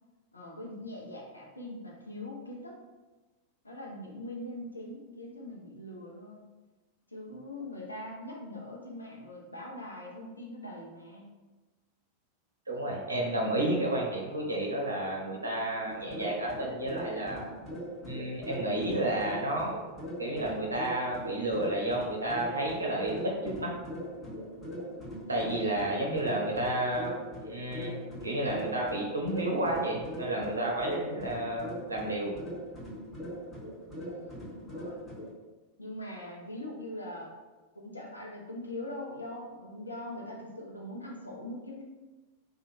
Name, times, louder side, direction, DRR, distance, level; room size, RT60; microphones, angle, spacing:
voice 1, 0.3-2.8 3.6-6.5 7.1-11.2 33.9-35.1 35.8-37.3 37.7-41.8, left 1 dB, 80° left, -2 dB, 0.6 m, -42 dB
voice 2, 12.7-17.5 18.0-19.7 20.2-23.7 25.3-27.1 27.5-28.0 28.2-32.3, right 1 dB, 80° right, -2 dB, 0.6 m, -31 dB
sound 1, 15.9-35.3, equal, 10° left, 1.2 m, -41 dB
2.9 x 2.3 x 2.6 m, 1.2 s
figure-of-eight pair, 90°, 0 cm